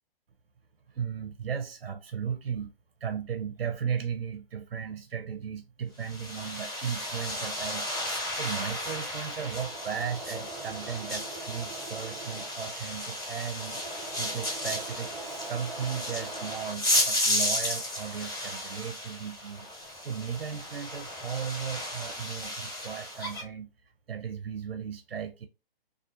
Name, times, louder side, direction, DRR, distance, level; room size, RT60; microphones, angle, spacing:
voice 1, 0.9-2.7 3.0-7.9 8.4-19.7 20.0-23.7 24.1-25.5, right 7 dB, 75° right, 0.6 m, -36 dB
sound 1, 6.0-23.4, left 1 dB, 20° left, 1.7 m, -33 dB
Engine / Mechanisms, 8.0-17.3 17.7-20.0 20.3-21.0, right 3 dB, 25° right, 0.7 m, -45 dB
2.4 x 2.3 x 2.6 m
hypercardioid pair, 140°, 29 cm